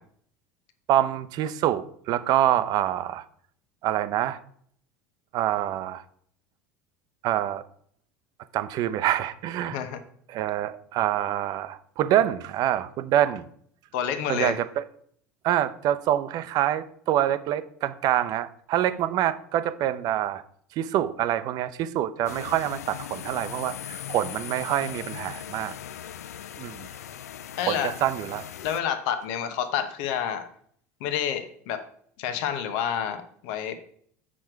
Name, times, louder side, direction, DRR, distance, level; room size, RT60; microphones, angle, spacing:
voice 1, 0.9-3.2 3.8-4.4 5.3-6.0 7.2-7.6 8.5-9.8 10.3-13.5 14.3-14.8 15.4-20.4 20.8-25.7 26.6-26.9 27.7-28.4, right 12 dB, 55° right, 13 dB, 0.7 m, -26 dB
voice 2, 13.9-14.6 27.6-27.9 28.6-30.5 31.0-31.8 32.2-33.7, left 9 dB, 65° left, 9 dB, 1.0 m, -29 dB
sound 1, 22.3-28.8, left 10 dB, 85° left, 0.4 m, -39 dB
7.4 x 6.3 x 4.6 m, 0.62 s
hypercardioid pair, 80°, 8 cm